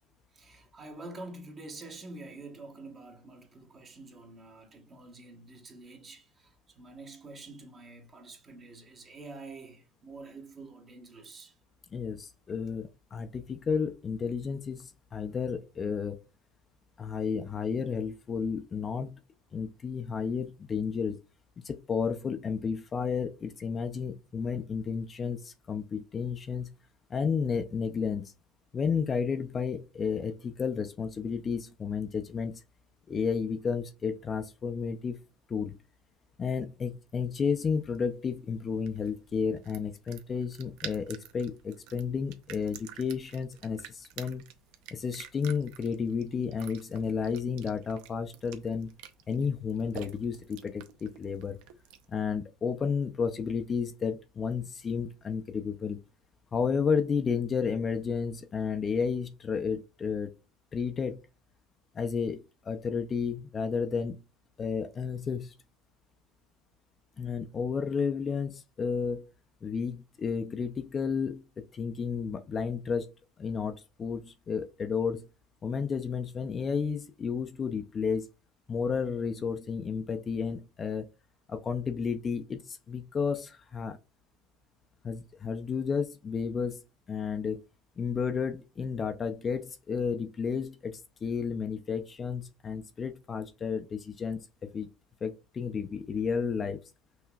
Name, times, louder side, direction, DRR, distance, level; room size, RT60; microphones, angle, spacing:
voice 1, 0.3-11.6, right 2 dB, 30° right, 1.2 m, -47 dB
voice 2, 11.9-16.2 17.0-19.2 19.5-21.2 21.6-26.7 27.1-28.3 28.7-32.6 33.1-35.2 35.5-35.8 36.4-44.4 44.9-48.9 49.3-51.6 52.1-56.0 56.5-60.3 60.7-61.2 61.9-64.2 64.6-65.5 67.2-69.3 69.6-71.4 71.7-73.1 73.4-75.2 75.6-78.3 78.7-81.1 81.5-84.0 85.0-86.8 87.1-87.6 88.0-94.9 95.2-96.8, left 6 dB, 30° left, 0.4 m, -32 dB
sound 1, 37.3-52.2, right 10 dB, 70° right, 0.6 m, -50 dB
5.7 x 2.9 x 2.3 m
supercardioid pair, 115°, 0 cm